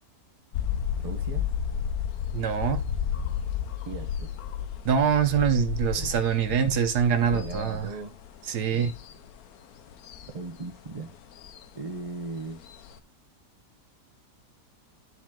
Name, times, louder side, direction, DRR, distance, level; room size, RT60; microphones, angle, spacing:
sound 1, 0.5-13.0, left 8 dB, 70° left, 1.1 m, -33 dB
voice 1, 1.0-1.6 3.8-4.3 5.9-6.2 7.2-8.1 8.7-8.9 10.3-11.1 11.7-12.6, right 3 dB, 30° right, 0.8 m, -38 dB
voice 2, 2.3-2.8 4.8-7.9 8.5-8.9, right 7 dB, 75° right, 1.5 m, -24 dB
10.5 x 4.1 x 3.7 m
omnidirectional pair, 1.7 m